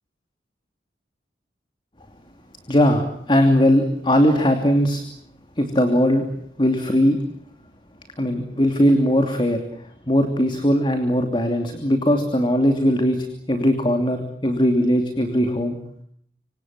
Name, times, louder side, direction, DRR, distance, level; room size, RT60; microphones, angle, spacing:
voice 1, 2.7-5.0 5.6-6.2 6.6-7.2 8.2-9.6 10.1-15.8, equal, 25° left, 6 dB, 2.9 m, -19 dB
27.5 x 25.5 x 7.5 m, 0.65 s
head